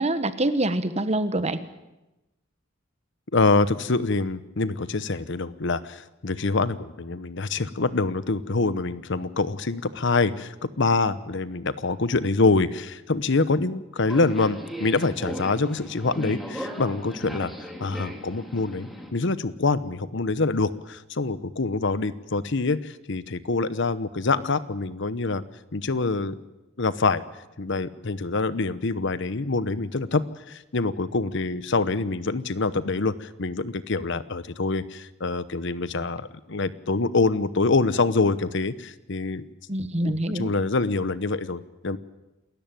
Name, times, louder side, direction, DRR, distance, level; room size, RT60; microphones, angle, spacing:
voice 1, 0.0-1.6 39.7-40.5, right 1 dB, 35° right, 12 dB, 1.3 m, -25 dB
voice 2, 3.3-25.4 25.7-26.4 26.8-27.2 27.6-39.4 40.0-42.0, left 3 dB, 65° left, 15 dB, 1.0 m, -25 dB
Subway metro underground, 14.1-19.1, equal, ahead, 3.1 m, -37 dB
28.0 x 14.0 x 9.1 m, 0.99 s
head